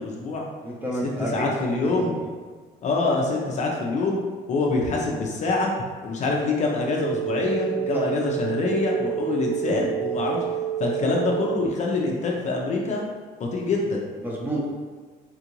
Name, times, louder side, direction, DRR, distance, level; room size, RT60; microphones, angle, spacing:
voice 1, 0.0-0.4 1.0-2.2 2.8-4.2 4.5-5.7 6.0-13.0 13.4-14.0, left 3 dB, 45° left, -1 dB, 0.5 m, -25 dB
voice 2, 0.6-2.2 7.9-8.1 14.2-14.7, right 1 dB, 10° right, -4 dB, 0.8 m, -30 dB
sound 1, 6.7-11.7, right 11 dB, 45° right, 0.4 m, -29 dB
3.7 x 2.4 x 2.9 m, 1.4 s
cardioid pair, 110°, 17 cm